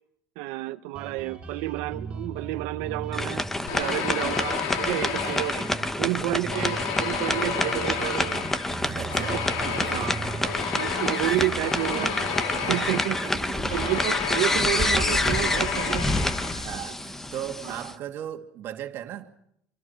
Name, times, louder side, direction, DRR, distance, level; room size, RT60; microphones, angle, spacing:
voice 1, 0.4-3.4 3.7-5.6 6.0-8.5 9.3-9.4 9.9-10.2 10.7-12.1 12.5-13.3 13.7-16.1 17.6-17.8, right 20 dB, 80° right, 0.8 m, -30 dB
Guitar, 1.0-18.2, right 4 dB, 15° right, 7.8 m, -40 dB
sound 1, 3.1-17.9, left 1 dB, 5° left, 1.1 m, -28 dB
sound 2, 3.7-6.1 6.5-16.8, left 7 dB, 80° left, 4.5 m, -32 dB
voice 2, 5.1-5.5 6.0-6.3 8.7-10.6 11.1-11.4 11.9-14.0 15.1-15.4 15.7-16.0 16.5-19.3, right 11 dB, 40° right, 2.5 m, -39 dB
27.5 x 25.0 x 5.8 m
cardioid pair, 175°, 5 cm